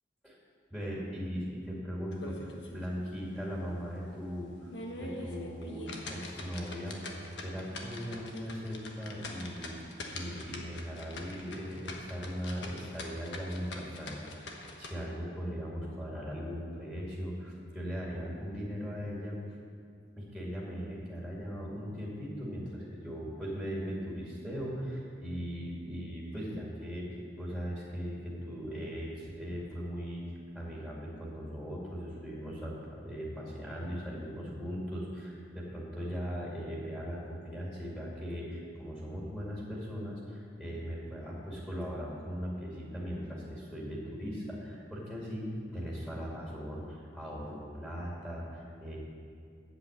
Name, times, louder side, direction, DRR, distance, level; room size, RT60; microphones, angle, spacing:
voice 1, 0.7-4.7 5.0-19.4 20.2-30.2 30.5-49.0, equal, 5° left, -5 dB, 2.2 m, -39 dB
sound 1, 2.1-2.9 3.2-3.3 3.8-3.9 4.5-14.9, left 2 dB, 85° left, 1.3 m, -44 dB
8.2 x 8.0 x 8.1 m, 2.2 s
head